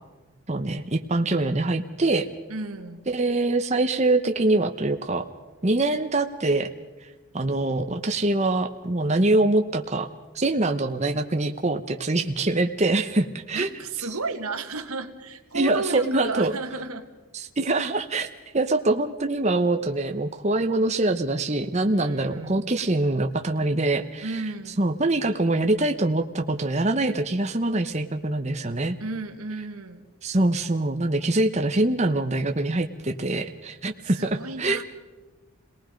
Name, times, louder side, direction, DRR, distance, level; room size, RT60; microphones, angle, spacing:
voice 1, 0.5-2.3 3.1-5.3 5.6-6.7 7.3-10.1 10.3-13.7 15.5-16.5 17.3-18.3 18.5-24.4 24.8-29.0 30.2-34.8, right 2 dB, 30° right, 6 dB, 0.9 m, -24 dB
voice 2, 2.5-3.1 13.5-17.1 21.9-22.6 24.2-24.8 29.0-30.1 34.0-34.8, right 3 dB, 90° right, 6 dB, 1.9 m, -33 dB
28.5 x 19.0 x 5.2 m, 1.2 s
head